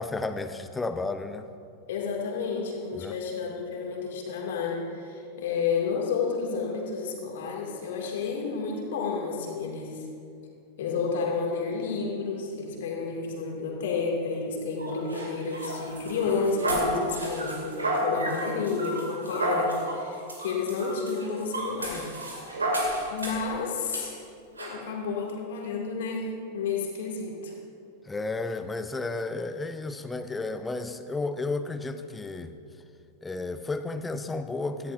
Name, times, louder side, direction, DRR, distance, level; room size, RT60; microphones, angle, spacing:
voice 1, 0.0-1.5 3.0-3.1 28.0-32.5 33.2-34.9, left 3 dB, 10° left, 10 dB, 0.7 m, -32 dB
voice 2, 1.9-10.0 10.8-22.1 23.1-24.2 24.6-27.5, left 5 dB, 55° left, -1 dB, 2.4 m, -31 dB
sound 1, 14.8-23.5 23.9-24.0 24.6-24.8, right 1 dB, 75° right, 2.5 m, -31 dB
17.5 x 14.0 x 2.6 m, 2.4 s
figure-of-eight pair, 90°, 0 cm